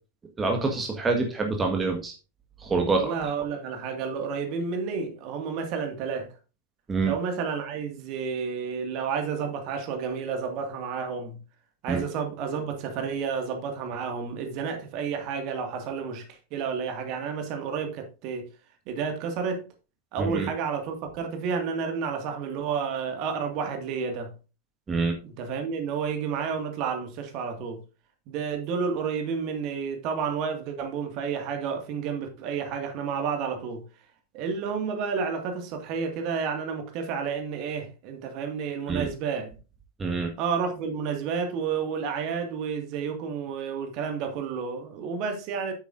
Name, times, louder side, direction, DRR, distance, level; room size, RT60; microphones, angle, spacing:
voice 1, 0.4-2.1 2.6-3.1 6.9-7.1 11.9-12.0 20.2-20.5 24.9-25.2 38.9-39.1 40.0-40.3, right 3 dB, 15° right, 1.6 m, -26 dB
voice 2, 2.9-6.3 7.0-11.4 11.8-18.5 18.9-19.7 20.1-24.3 25.2-27.8 28.3-33.8 34.3-39.5 40.4-45.7, right 6 dB, 40° right, 2.1 m, -31 dB
9.4 x 8.1 x 2.6 m
figure-of-eight pair, 90°, 0 cm